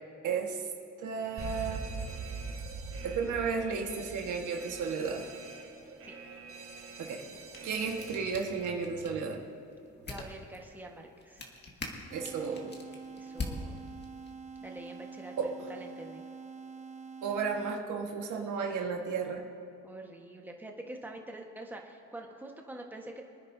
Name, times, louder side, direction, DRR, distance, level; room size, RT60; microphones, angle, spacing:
voice 1, 0.2-0.7 1.0-1.8 3.0-5.3 7.0-7.2 7.6-9.4 12.1-12.7 15.4-15.6 17.2-19.4, right 5 dB, 80° right, 2 dB, 1.6 m, -33 dB
Alarm, 1.4-9.1, right 4 dB, 45° right, 1.5 m, -43 dB
sound 1, 7.2-14.3, left 3 dB, 35° left, 1.9 m, -45 dB
voice 2, 10.1-11.5 13.2-13.9 14.6-16.2 19.8-23.2, right 1 dB, 5° right, 1 dB, 1.4 m, -46 dB
sound 2, 12.1-18.1, right 5 dB, 25° right, 0.8 m, -46 dB
25.0 x 9.8 x 2.8 m, 2.7 s
cardioid pair, 90°, 30 cm